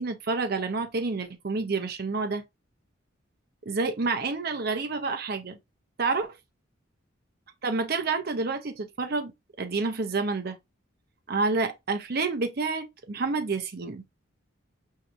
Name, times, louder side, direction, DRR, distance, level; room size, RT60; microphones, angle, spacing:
voice 1, 0.0-2.4 3.6-5.6 6.0-6.4 7.6-9.3 9.6-10.6 11.3-14.0, right 4 dB, 50° right, 0.6 m, -29 dB
5.7 x 2.7 x 2.4 m
head